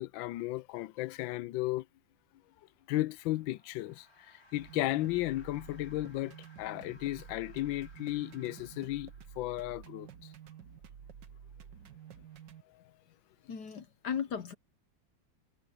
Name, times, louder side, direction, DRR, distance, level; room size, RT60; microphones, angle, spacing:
voice 1, 0.0-1.8 2.9-9.1 9.4-10.1, left 17 dB, 80° left, 1.4 m, -34 dB
sound 1, 2.7-9.8, left 1 dB, 35° left, 4.3 m, -63 dB
sound 2, 4.5-12.6, right 8 dB, 70° right, 1.8 m, -51 dB
voice 2, 13.5-14.5, left 7 dB, 60° left, 1.5 m, -36 dB
omnidirectional pair, 2.1 m